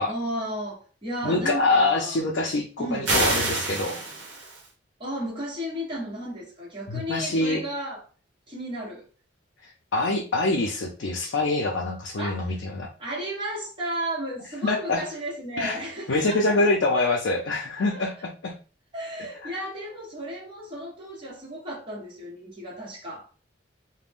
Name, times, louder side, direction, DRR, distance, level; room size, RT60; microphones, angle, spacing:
voice 1, 0.1-2.2 2.8-3.3 5.0-8.0 8.5-9.0 12.2-12.6 13.0-16.7 17.9-18.0 18.9-23.3, right 1 dB, 25° right, 1.1 m, -34 dB
voice 2, 1.2-4.0 6.9-7.6 9.9-12.9 14.6-15.1 15.6-15.8 16.1-18.5 19.4-19.5, left 2 dB, 70° left, 0.5 m, -25 dB
sound 1, 3.1-4.7, right 2 dB, 65° right, 0.9 m, -27 dB
2.5 x 2.1 x 3.4 m
head